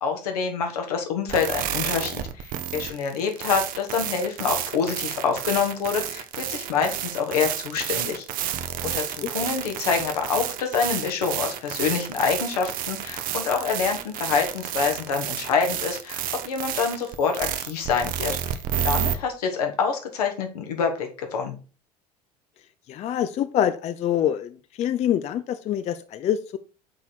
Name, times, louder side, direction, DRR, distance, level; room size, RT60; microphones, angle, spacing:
voice 1, 0.0-8.2 8.8-18.4 18.8-21.6, left 6 dB, 70° left, 4 dB, 1.3 m, -26 dB
sound 1, 1.3-19.1, right 10 dB, 45° right, 0.7 m, -30 dB
voice 2, 22.9-26.6, left 10 dB, 35° left, 11 dB, 0.4 m, -25 dB
6.0 x 4.2 x 4.3 m, 0.35 s
figure-of-eight pair, 70°, 20 cm